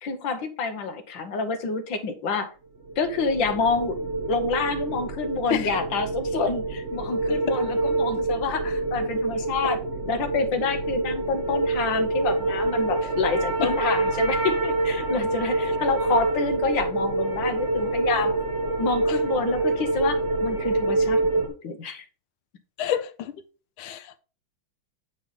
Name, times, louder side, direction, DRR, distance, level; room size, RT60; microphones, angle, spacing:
voice 1, 0.0-2.5 3.0-4.0 4.3-9.8 10.0-18.3 18.8-22.0, left 4 dB, 65° left, 1.7 m, -28 dB
sound 1, 2.9-21.5, right 2 dB, 40° right, 1.3 m, -26 dB
voice 2, 22.8-23.3 23.8-24.2, left 10 dB, 85° left, 1.6 m, -28 dB
9.1 x 3.4 x 5.5 m
omnidirectional pair, 2.3 m